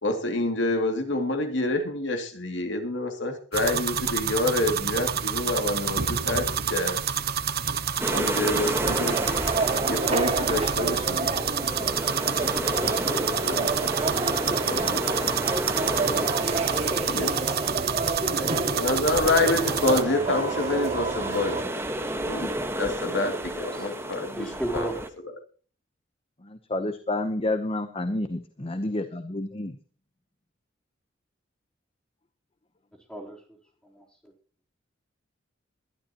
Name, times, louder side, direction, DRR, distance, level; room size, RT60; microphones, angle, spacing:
voice 1, 0.0-7.0 8.1-9.2 9.9-11.5 13.4-14.0 14.6-15.3 17.1-17.3 18.3-21.6 22.2-22.5 22.8-24.5 24.7-24.9, left 2 dB, 65° left, 4 dB, 2.5 m, -27 dB
sound 1, 3.5-20.0, right 8 dB, 50° right, 0.9 m, -28 dB
sound 2, 8.0-25.1, right 1 dB, 15° right, 1.4 m, -33 dB
sound 3, 8.8-21.6, right 3 dB, 35° right, 2.1 m, -30 dB
voice 2, 23.6-23.9 24.3-24.9 33.1-33.4 33.8-34.3, right 1 dB, 5° left, -1 dB, 3.7 m, -34 dB
voice 3, 26.5-29.7, left 2 dB, 30° left, 9 dB, 0.8 m, -29 dB
21.5 x 12.0 x 3.0 m, 0.39 s
head